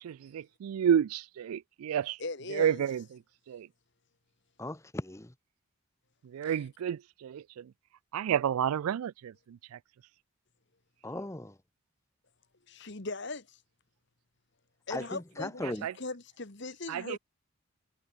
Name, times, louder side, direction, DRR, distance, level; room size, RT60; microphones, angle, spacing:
voice 1, 0.0-2.2 2.5-3.0 3.5-3.7 6.2-7.7 8.1-9.8 15.8-15.9 16.9-17.2, right 9 dB, 85° right, 0.3 m, -30 dB
voice 2, 2.2-2.8 6.4-6.5 12.7-13.6 14.9-15.6 16.0-17.2, left 3 dB, 55° left, 1.6 m, -39 dB
voice 3, 4.6-5.3 11.0-11.6 14.9-15.9, left 1 dB, 15° left, 0.8 m, -38 dB
head